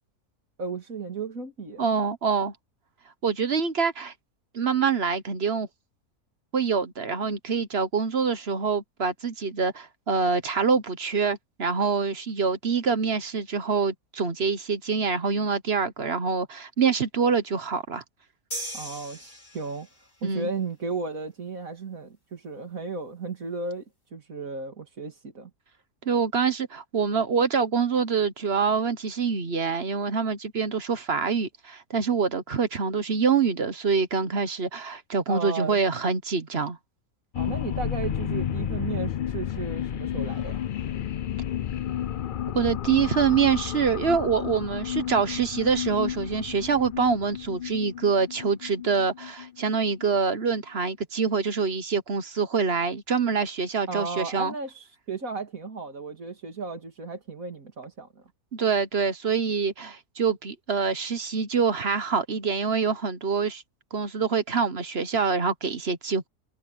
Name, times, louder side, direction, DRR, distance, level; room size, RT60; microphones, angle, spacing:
voice 1, 0.6-1.9 18.7-19.9 20.2-23.8 24.1-25.5 35.3-35.8 37.3-40.6 53.9-58.2, right 4 dB, 65° right, 3.1 m, -34 dB
voice 2, 1.8-2.5 3.2-4.1 4.5-5.7 6.5-18.0 20.2-20.5 26.0-36.8 42.5-54.5 58.5-63.6 63.9-66.3, right 5 dB, 45° right, 1.2 m, -25 dB
sound 1, 18.5-20.1, right 1 dB, 35° left, 5.9 m, -37 dB
sound 2, 37.3-50.2, left 10 dB, 75° left, 0.4 m, -32 dB
omnidirectional pair, 1.6 m